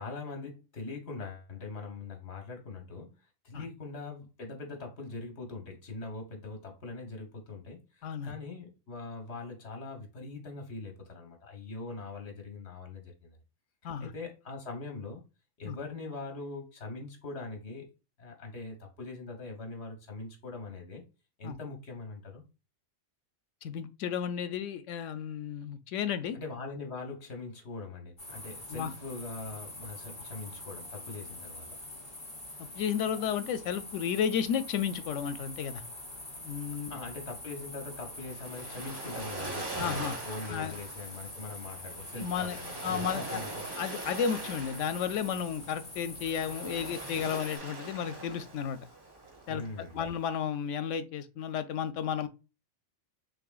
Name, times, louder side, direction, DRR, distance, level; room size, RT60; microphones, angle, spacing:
voice 1, 0.0-3.1 3.4-13.4 14.0-15.2 15.6-17.9 18.2-21.0 21.4-22.4 26.3-31.8 36.9-43.7 49.5-50.0, left 3 dB, 60° left, 1.5 m, -42 dB
voice 2, 8.0-8.3 13.8-14.1 15.6-15.8 21.4-21.6 23.6-26.4 28.7-28.9 32.6-35.8 36.4-37.0 39.8-40.2 40.5-40.7 42.2-42.6 42.8-43.4 43.8-48.8 49.5-52.3, left 8 dB, 90° left, 0.9 m, -33 dB
sound 1, 28.2-47.6, left 1 dB, 40° left, 2.6 m, -45 dB
Waves surf, 37.9-50.3, right 2 dB, 20° right, 1.0 m, -42 dB
6.1 x 3.0 x 2.3 m
omnidirectional pair, 1.2 m